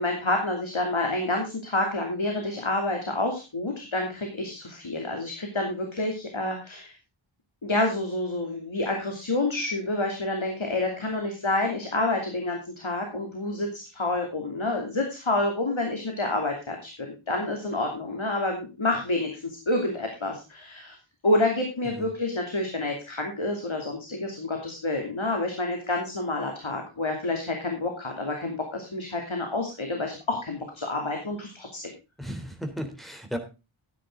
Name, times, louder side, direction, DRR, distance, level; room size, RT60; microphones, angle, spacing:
voice 1, 0.0-6.9 7.6-20.9 21.2-31.9, left 2 dB, 70° left, 2 dB, 2.9 m, -28 dB
voice 2, 32.2-33.4, equal, ahead, 4 dB, 3.4 m, -34 dB
13.5 x 9.8 x 3.8 m, 0.30 s
wide cardioid pair, 45°, 49 cm